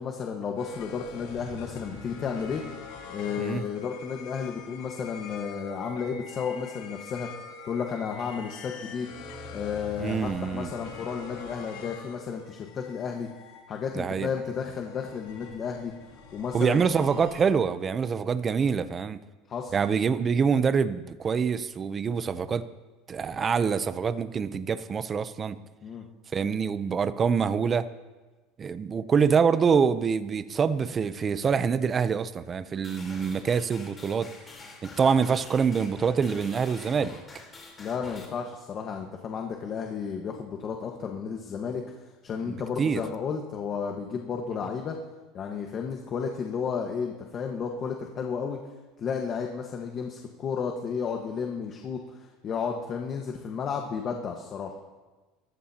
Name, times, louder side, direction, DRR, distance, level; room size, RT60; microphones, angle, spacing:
voice 1, 0.0-2.6 3.1-7.3 7.6-9.1 9.5-13.3 13.7-15.9 16.3-16.8 19.5-19.8 25.8-26.0 37.8-41.8 42.2-45.0 45.3-48.6 49.0-54.8, left 6 dB, 40° left, 2 dB, 1.4 m, -32 dB
sound 1, 0.6-17.8, left 4 dB, 80° left, 5.1 m, -44 dB
voice 2, 10.0-10.7 13.9-14.3 16.5-19.2 19.7-22.7 23.1-25.6 26.3-27.9 28.6-34.3 34.8-37.2 42.4-43.0, right 6 dB, 30° right, 14 dB, 0.6 m, -25 dB
sound 2, 32.8-38.3, left 3 dB, 20° left, 3.8 m, -47 dB
23.5 x 14.0 x 2.9 m, 1.3 s
supercardioid pair, 120°, 0 cm